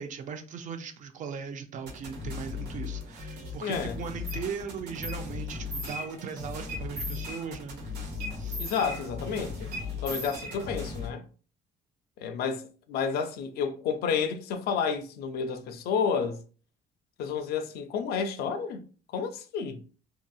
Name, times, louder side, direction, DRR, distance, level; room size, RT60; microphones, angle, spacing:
voice 1, 0.0-7.8 8.3-8.6, right 6 dB, 50° right, 0.4 m, -38 dB
sound 1, 1.9-11.1, left 5 dB, 80° right, 1.0 m, -38 dB
voice 2, 3.6-4.0 8.6-9.7 10.0-11.3 12.2-16.4 17.2-18.8 19.1-19.8, left 6 dB, 70° left, 0.4 m, -30 dB
sound 2, 4.3-4.4 5.0-5.2 5.5-6.3 6.7-7.7 8.2-9.3 9.7-11.0, right 1 dB, 65° right, 1.3 m, -39 dB
2.8 x 2.7 x 2.3 m
cardioid pair, 110°, 17 cm